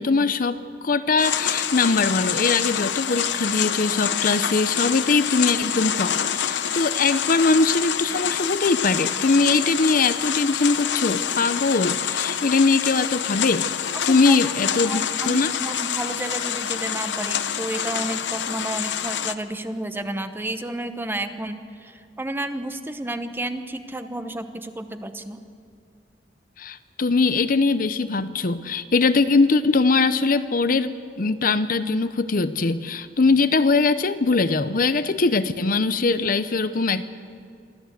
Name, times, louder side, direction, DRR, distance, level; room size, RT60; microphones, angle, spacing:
voice 1, 0.0-13.7 14.1-15.5 26.6-37.1, left 3 dB, 50° left, 12 dB, 0.7 m, -21 dB
sound 1, 1.2-19.3, left 9 dB, 85° left, 0.8 m, -27 dB
voice 2, 14.0-14.5 14.8-25.4, right 1 dB, 10° right, 8 dB, 0.9 m, -31 dB
24.0 x 14.0 x 8.0 m, 2.2 s
head